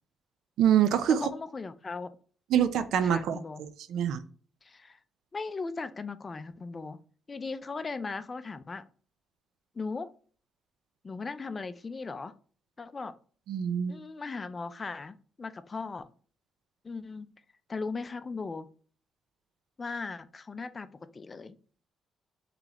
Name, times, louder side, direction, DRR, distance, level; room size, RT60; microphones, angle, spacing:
voice 1, 0.6-1.3 2.5-4.2 13.5-14.0, right 9 dB, 80° right, 0.4 m, -25 dB
voice 2, 1.1-2.1 3.0-3.6 4.6-5.0 5.3-7.0 7.3-8.9 9.8-10.1 11.0-12.3 12.8-13.1 13.9-16.1 16.8-17.3 17.7-18.7 19.8-20.9 21.1-21.6, left 4 dB, 30° left, 0.4 m, -38 dB
3.8 x 3.2 x 2.9 m
cardioid pair, 90°, 0 cm